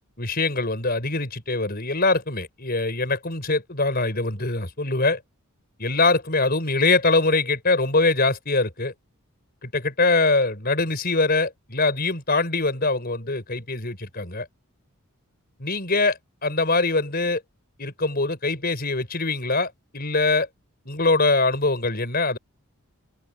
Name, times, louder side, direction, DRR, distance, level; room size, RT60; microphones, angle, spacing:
voice 1, 0.2-5.2 5.8-8.9 9.6-14.5 15.6-17.4 17.8-20.5 20.8-22.4, left 3 dB, 45° left, 5.1 m, -23 dB
head